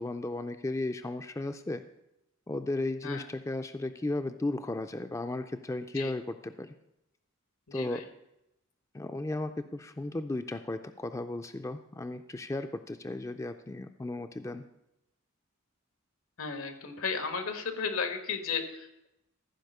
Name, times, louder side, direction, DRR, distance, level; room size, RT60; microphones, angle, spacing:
voice 1, 0.0-1.8 2.5-6.7 7.7-8.0 8.9-14.6, left 2 dB, 15° left, 8 dB, 0.4 m, -35 dB
voice 2, 7.7-8.0 16.4-19.1, left 5 dB, 85° left, 7 dB, 1.4 m, -34 dB
14.0 x 5.1 x 6.6 m, 0.86 s
head